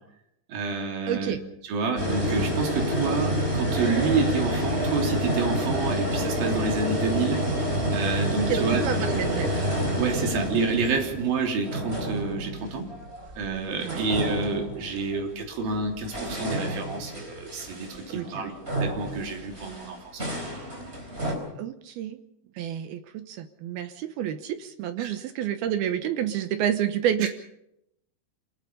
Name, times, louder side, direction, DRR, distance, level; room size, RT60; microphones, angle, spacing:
voice 1, 0.5-1.4 1.7-7.4 7.9-8.8 10.0-12.9 13.4-18.5 18.8-20.0 25.0-25.1, right 4 dB, 50° right, 2 dB, 4.8 m, -28 dB
voice 2, 1.0-1.4 8.4-9.7 13.8-14.0 18.1-18.5 21.6-22.2 22.6-27.3, right 10 dB, 75° right, 9 dB, 2.3 m, -29 dB
sound 1, 2.0-13.5 13.8-15.2 15.8-21.3, equal, 15° right, 3.9 m, -29 dB
27.0 x 20.0 x 5.5 m, 0.78 s
omnidirectional pair, 5.6 m